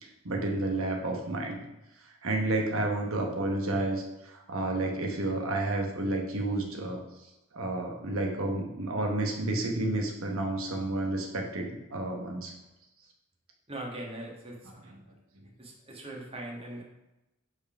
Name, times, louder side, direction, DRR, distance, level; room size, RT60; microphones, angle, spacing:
voice 1, 0.0-1.6 2.2-7.0 7.5-12.5, right 2 dB, 80° right, 2 dB, 1.1 m, -31 dB
voice 2, 13.7-15.0 15.6-16.8, right 1 dB, 25° right, -1 dB, 1.3 m, -41 dB
5.4 x 4.7 x 5.8 m, 0.95 s
head